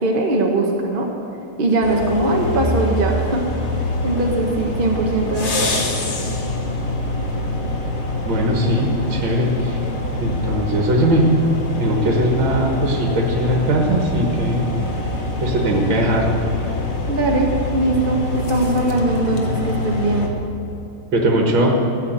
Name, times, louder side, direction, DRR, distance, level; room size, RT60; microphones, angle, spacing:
voice 1, 0.0-1.1 1.6-3.4 4.0-5.8 17.1-20.3, right 2 dB, 35° right, 0 dB, 0.9 m, -20 dB
sound 1, 1.8-20.3, left 2 dB, 40° left, 1.3 m, -25 dB
voice 2, 8.2-9.8 10.2-11.2 11.8-14.7 15.4-16.3 21.1-21.8, right 1 dB, 65° right, 0 dB, 2.3 m, -19 dB
14.0 x 8.1 x 8.0 m, 2.9 s
omnidirectional pair, 2.3 m